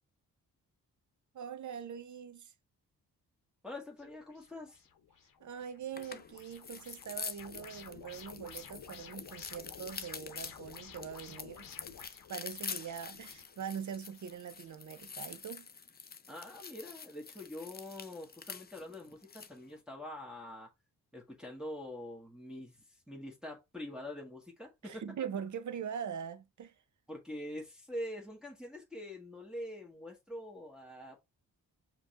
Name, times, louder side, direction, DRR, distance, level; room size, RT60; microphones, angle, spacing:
voice 1, 1.3-2.5 5.4-11.7 12.0-15.7 24.8-26.7, right 8 dB, 50° right, 0.7 m, -42 dB
voice 2, 3.6-4.8 16.3-20.7 21.1-25.0 27.1-31.3, left 1 dB, ahead, 1.4 m, -45 dB
sound 1, 4.0-15.5, left 7 dB, 60° left, 0.8 m, -53 dB
sound 2, 5.9-19.6, left 6 dB, 25° left, 0.5 m, -46 dB
5.0 x 3.2 x 2.4 m
cardioid pair, 70°, 37 cm